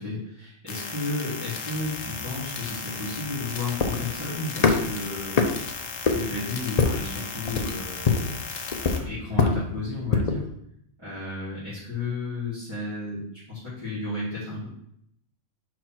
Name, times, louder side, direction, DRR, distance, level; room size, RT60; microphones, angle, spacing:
voice 1, 0.0-5.6 6.1-8.3 8.8-10.5 11.0-13.2 13.5-14.7, left 2 dB, 15° right, -13 dB, 3.3 m, -33 dB
sound 1, 0.7-9.0, left 5 dB, 55° left, 1.1 m, -36 dB
sound 2, 1.7-10.4, left 4 dB, 40° left, 0.6 m, -26 dB
5.3 x 4.6 x 6.0 m, 0.73 s
omnidirectional pair, 1.5 m